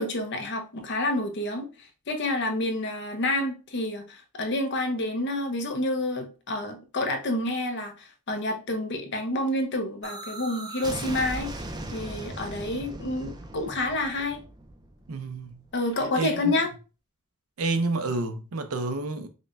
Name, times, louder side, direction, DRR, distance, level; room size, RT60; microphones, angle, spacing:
voice 1, 0.0-11.5 11.9-14.4 15.7-16.7, left 2 dB, 55° left, 0.7 m, -29 dB
sound 1, 10.0-15.8, right 2 dB, 20° right, 0.4 m, -38 dB
voice 2, 15.1-15.6 16.1-16.6 17.6-19.3, right 3 dB, 85° right, 0.6 m, -29 dB
5.2 x 2.2 x 2.5 m
head